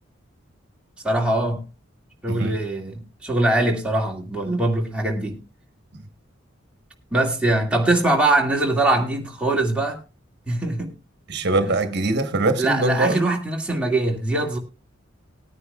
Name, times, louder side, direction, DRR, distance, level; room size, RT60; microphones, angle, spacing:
voice 1, 1.0-1.7 2.2-5.4 7.1-10.0 10.5-10.9 11.6-11.7 12.6-14.6, right 2 dB, 5° right, 2.2 m, -22 dB
voice 2, 11.3-13.3, right 2 dB, 55° right, 1.2 m, -22 dB
20.0 x 9.7 x 2.4 m
head